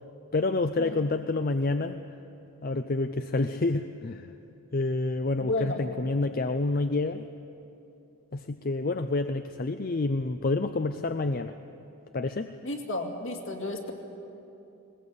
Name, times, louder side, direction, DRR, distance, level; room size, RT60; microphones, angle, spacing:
voice 1, 0.3-2.0 2.6-4.3 4.7-7.2 8.3-11.5 12.1-12.5, left 2 dB, 40° left, 9 dB, 0.5 m, -28 dB
voice 2, 5.4-5.8 12.6-13.9, left 2 dB, 65° left, 2 dB, 2.5 m, -32 dB
20.5 x 20.5 x 8.3 m, 2.8 s
head